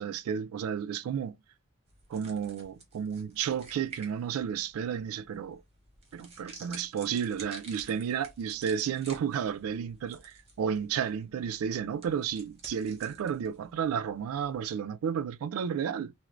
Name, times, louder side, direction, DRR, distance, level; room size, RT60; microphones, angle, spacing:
voice 1, 0.0-1.3 2.1-5.6 6.1-16.1, right 8 dB, 75° right, 0.3 m, -32 dB
sound 1, 1.9-14.7, right 3 dB, 30° right, 0.8 m, -52 dB
2.4 x 2.0 x 3.0 m
head